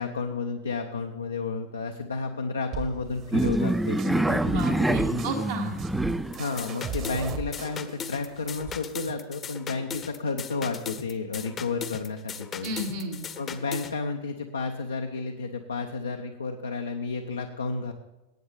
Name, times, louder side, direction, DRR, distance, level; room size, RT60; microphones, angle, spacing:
voice 1, 0.0-5.2 6.3-12.7 13.4-17.9, left 4 dB, 75° left, 4 dB, 0.8 m, -32 dB
sound 1, 2.7-8.7, right 5 dB, 35° right, 1.2 m, -37 dB
sound 2, 3.3-6.4, right 1 dB, 5° right, 0.3 m, -25 dB
voice 2, 4.5-5.8 12.6-13.2, right 1 dB, 65° right, -2 dB, 1.5 m, -33 dB
sound 3, 6.3-13.9, left 7 dB, 25° left, 0.9 m, -38 dB
18.5 x 8.8 x 3.5 m, 1.0 s
figure-of-eight pair, 90°, 0 cm